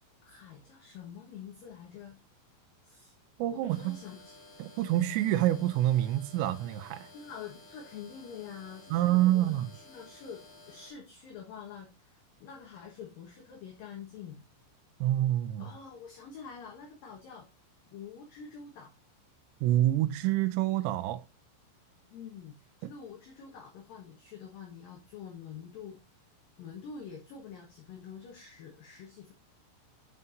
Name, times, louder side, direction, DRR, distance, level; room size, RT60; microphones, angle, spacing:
voice 1, 0.2-2.2 2.8-3.2 3.5-4.4 7.1-14.4 15.6-17.5 17.9-18.9 22.1-26.0 26.6-29.3, left 7 dB, 65° left, 2.3 m, -46 dB
voice 2, 3.4-4.0 4.6-7.1 8.9-9.7 15.0-15.7 19.6-21.2 22.8-22.9, right 14 dB, 80° right, 2.5 m, -27 dB
sound 1, 3.7-10.9, left 2 dB, 85° left, 6.0 m, -54 dB
12.5 x 5.6 x 2.6 m
omnidirectional pair, 5.8 m